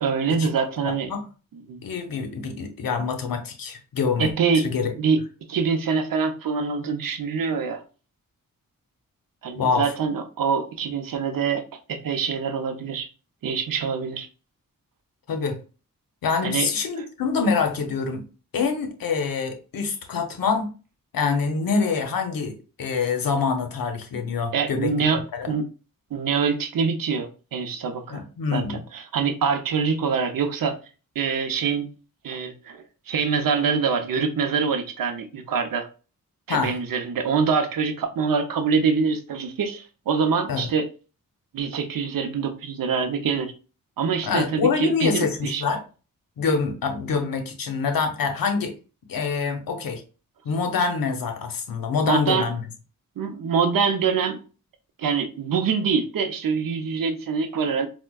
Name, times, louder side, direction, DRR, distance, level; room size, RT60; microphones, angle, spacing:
voice 1, 0.0-1.1 1.7-1.8 4.2-4.7 5.0-5.2 5.5-7.8 9.4-11.6 11.9-13.1 13.4-14.3 16.4-16.7 24.5-25.2 25.5-25.7 26.1-28.2 28.5-30.8 31.2-31.9 32.2-35.9 36.5-40.9 41.5-43.5 44.0-45.6 52.1-52.5 53.2-54.4 55.0-57.9, right 5 dB, 75° right, 0.6 m, -25 dB
voice 2, 0.8-1.2 1.8-4.9 9.6-9.9 15.3-15.6 16.2-18.2 18.5-20.7 21.1-24.9 25.3-25.5 28.1-28.8 36.5-36.8 40.5-40.7 44.2-45.8 46.4-48.7 49.1-50.0 50.4-52.6, left 5 dB, 90° left, 0.7 m, -25 dB
4.3 x 2.1 x 2.2 m
wide cardioid pair, 80°, 34 cm